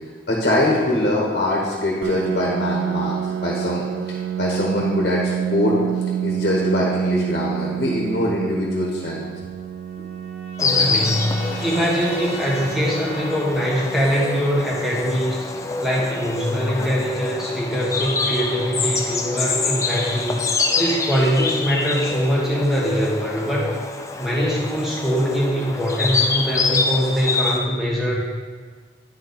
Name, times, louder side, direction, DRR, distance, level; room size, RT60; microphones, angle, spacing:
voice 1, 0.3-3.1 3.4-5.8 6.2-9.2, left 1 dB, 55° left, -3 dB, 1.2 m, -22 dB
Piano, 2.0-17.4, right 9 dB, 90° right, 0.3 m, -29 dB
Trumpet, 9.1-13.8, equal, 40° right, 2.0 m, -39 dB
Insect, 10.6-27.6, left 4 dB, 15° left, 0.4 m, -26 dB
voice 2, 10.6-15.5 15.8-20.5 20.8-23.8 24.2-28.2, equal, ahead, -5 dB, 1.3 m, -22 dB
9.3 x 4.6 x 4.0 m, 1.5 s
head